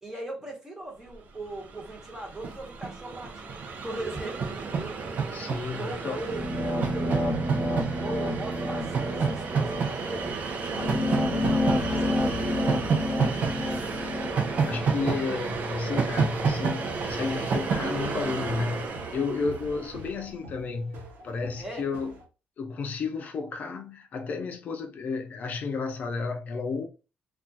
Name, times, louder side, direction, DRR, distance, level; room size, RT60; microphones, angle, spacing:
voice 1, 0.0-4.9 5.8-6.5 6.8-7.4 8.0-12.6 13.2-13.4 21.6-21.8, right 2 dB, 15° right, 1.1 m, -39 dB
Train, 1.4-1.5 1.7-20.1, right 5 dB, 55° right, 0.6 m, -30 dB
voice 2, 5.3-6.2 14.6-22.1 22.6-26.9, left 4 dB, 50° left, 0.5 m, -32 dB
sound 1, 6.3-15.2, left 1 dB, 20° left, 1.0 m, -30 dB
sound 2, 15.6-22.2, equal, 80° right, 0.9 m, -47 dB
2.4 x 2.3 x 3.9 m
cardioid pair, 125°, 3 cm